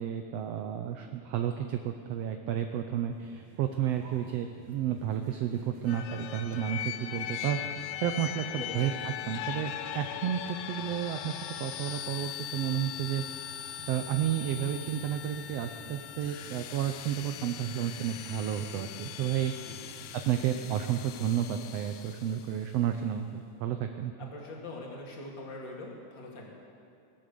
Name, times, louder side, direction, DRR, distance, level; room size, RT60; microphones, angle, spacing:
voice 1, 0.0-13.2 13.9-19.5 20.1-24.3, right 10 dB, 80° right, 6 dB, 1.4 m, -32 dB
sound 1, 3.1-20.1, right 1 dB, 65° right, 3.3 m, -51 dB
sound 2, 5.9-22.6, left 11 dB, 90° left, 1.5 m, -40 dB
voice 2, 8.6-8.9 19.7-19.8 24.2-26.5, left 2 dB, 40° left, -1 dB, 2.6 m, -43 dB
22.0 x 8.1 x 6.7 m, 2.4 s
omnidirectional pair, 3.6 m